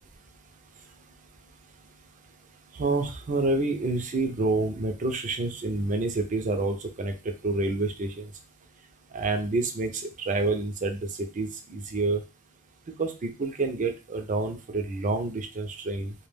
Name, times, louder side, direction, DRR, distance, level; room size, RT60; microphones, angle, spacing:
voice 1, 2.7-8.3 9.1-12.2 13.0-16.1, right 3 dB, 35° right, 4 dB, 0.4 m, -28 dB
2.2 x 2.1 x 3.2 m, 0.29 s
head